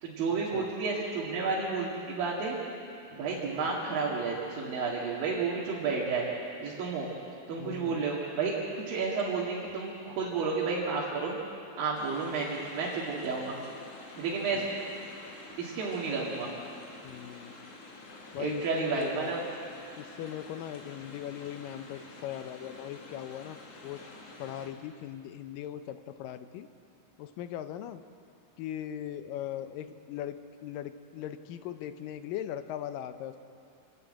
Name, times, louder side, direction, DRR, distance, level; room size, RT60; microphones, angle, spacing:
voice 1, 0.0-2.6 3.1-6.3 6.6-7.1 7.5-8.5 8.9-11.4 11.8-13.6 14.2-14.8 15.6-16.5 18.4-19.4, right 4 dB, 80° right, -5 dB, 3.9 m, -31 dB
voice 2, 7.6-8.0 14.5-14.7 17.0-17.5 18.3-19.3 20.0-24.0 24.4-26.7 27.2-28.0 28.6-33.4, left 11 dB, 80° left, 10 dB, 2.3 m, -39 dB
sound 1, 11.9-24.7, left 3 dB, 45° left, 3.0 m, -49 dB
28.0 x 11.5 x 8.8 m, 2.7 s
omnidirectional pair, 4.0 m